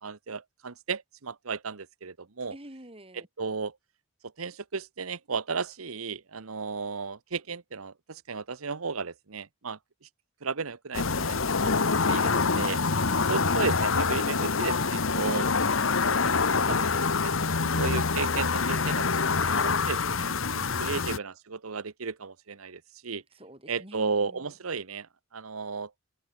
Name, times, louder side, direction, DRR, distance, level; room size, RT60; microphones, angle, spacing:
voice 1, 0.0-2.5 3.1-3.8 4.4-10.1 10.4-12.8 13.3-15.5 15.8-16.2 16.5-17.3 17.8-20.3 20.8-23.2 23.7-25.9, right 5 dB, 85° right, 1.1 m, -34 dB
voice 2, 2.5-3.3 13.0-13.5 20.5-21.1 23.3-24.5, right 1 dB, 25° right, 6.7 m, -47 dB
sound 1, 10.9-21.2, left 4 dB, 65° left, 1.3 m, -26 dB
head